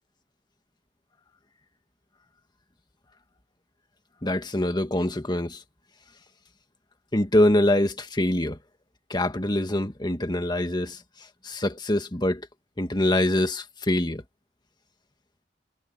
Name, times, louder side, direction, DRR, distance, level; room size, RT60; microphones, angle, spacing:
voice 1, 4.2-5.6 7.1-8.6 9.1-11.0 11.4-12.5 12.8-14.2, left 1 dB, 25° left, 1.7 m, -24 dB
head